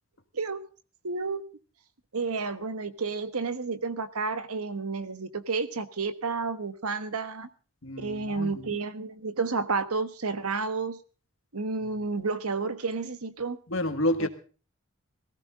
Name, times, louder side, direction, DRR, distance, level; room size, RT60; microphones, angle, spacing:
voice 1, 1.0-1.4 2.1-7.5 8.0-11.0 11.5-13.6 14.2-14.3, right 4 dB, 85° right, 1.3 m, -31 dB
voice 2, 7.8-8.7 13.7-14.3, left 1 dB, 60° left, 1.8 m, -29 dB
18.5 x 16.0 x 3.7 m
head